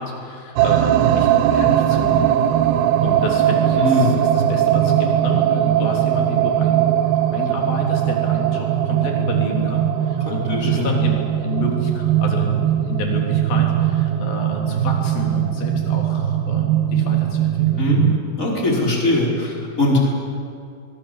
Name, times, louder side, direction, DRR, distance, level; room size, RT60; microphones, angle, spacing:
voice 1, 0.0-2.3 3.0-6.9 7.3-17.9, left 3 dB, 75° left, 1 dB, 5.2 m, -30 dB
sound 1, 0.6-18.2, right 11 dB, 85° right, 3.0 m, -19 dB
voice 2, 3.7-4.1 10.2-10.9 17.8-18.0 18.4-20.2, left 1 dB, 20° left, -3 dB, 5.0 m, -20 dB
24.5 x 22.0 x 7.5 m, 2.3 s
omnidirectional pair, 4.3 m